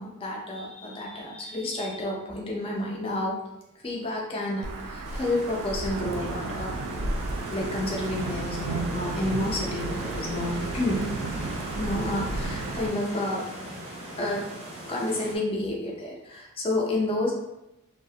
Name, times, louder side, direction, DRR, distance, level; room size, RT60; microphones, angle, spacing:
voice 1, 0.0-3.4 3.8-7.1 7.5-11.1 11.7-13.9 14.2-14.5 14.9-17.3, left 1 dB, 25° left, -2 dB, 0.3 m, -30 dB
Wind / Thunder / Rain, 4.6-12.9, right 3 dB, 85° right, 0.3 m, -33 dB
sound 1, 5.0-15.4, right 1 dB, 30° right, 0.5 m, -39 dB
2.3 x 2.0 x 2.7 m, 0.89 s
head